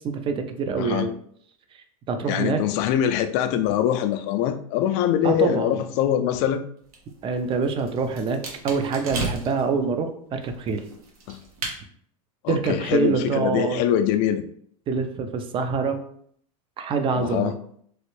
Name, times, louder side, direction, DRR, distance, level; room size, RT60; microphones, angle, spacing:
voice 1, 0.0-1.1 2.1-2.6 5.2-5.8 7.2-10.8 12.5-13.8 14.9-16.0 16.8-17.5, right 5 dB, 30° right, 7 dB, 0.4 m, -25 dB
voice 2, 0.8-1.1 2.3-6.6 11.3-11.4 12.4-14.4 17.1-17.5, left 10 dB, 55° left, 9 dB, 0.4 m, -23 dB
sound 1, 6.8-9.7 10.4-11.8, right 3 dB, 85° right, 0.9 m, -35 dB
3.1 x 2.5 x 3.1 m, 0.63 s
hypercardioid pair, 110°, 18 cm